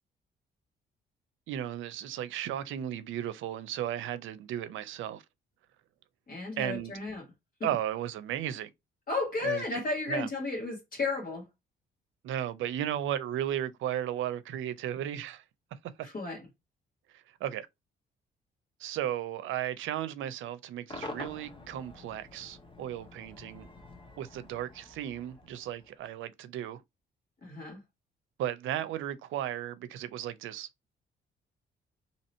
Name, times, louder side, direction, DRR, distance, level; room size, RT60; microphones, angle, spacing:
voice 1, 1.5-5.2 6.6-6.9 7.6-8.7 9.4-9.8 10.1-10.3 12.2-15.4 15.8-16.1 17.1-17.7 18.8-23.7 24.2-26.8 28.4-30.7, right 11 dB, 80° right, 0.5 m, -35 dB
voice 2, 6.3-7.2 9.1-11.4 16.0-16.4 27.4-27.8, left 3 dB, 45° left, 1.6 m, -33 dB
Cheering / Crowd / Fireworks, 20.9-26.2, left 2 dB, 25° left, 1.2 m, -47 dB
2.9 x 2.8 x 4.2 m
cardioid pair, 90°, 20 cm